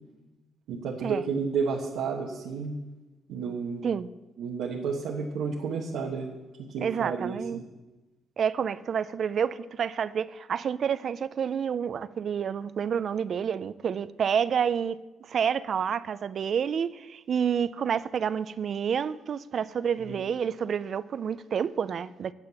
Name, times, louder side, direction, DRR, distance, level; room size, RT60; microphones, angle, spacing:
voice 1, 0.7-2.8 3.3-3.8 4.4-6.3 6.7-7.4 20.1-20.2, right 5 dB, 90° right, 1.3 m, -31 dB
voice 2, 6.8-7.6 8.4-22.3, right 7 dB, 55° right, 0.4 m, -29 dB
9.7 x 8.0 x 6.9 m
cardioid pair, 90°, 0 cm